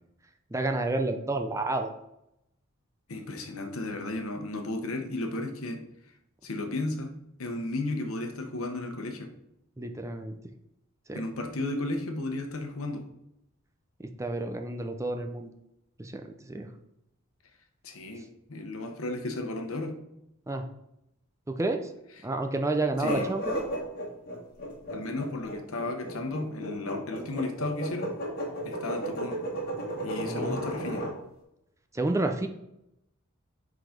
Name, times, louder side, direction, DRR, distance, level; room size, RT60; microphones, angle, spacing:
voice 1, 0.5-1.9 9.8-10.3 11.1-11.2 14.2-15.5 16.0-16.2 16.5-16.7 20.5-20.6 21.5-21.9 22.2-23.6 30.2-30.6 31.9-32.5, right 2 dB, 15° right, 5 dB, 0.5 m, -30 dB
voice 2, 3.1-5.8 6.4-7.1 7.4-9.3 11.1-13.0 17.8-19.9 23.0-23.3 24.9-28.1 28.6-29.4 30.0-31.0, left 2 dB, 70° left, 4 dB, 1.1 m, -34 dB
sound 1, 23.0-31.2, right 1 dB, 45° left, 1.8 m, -34 dB
7.7 x 4.0 x 5.1 m, 0.83 s
head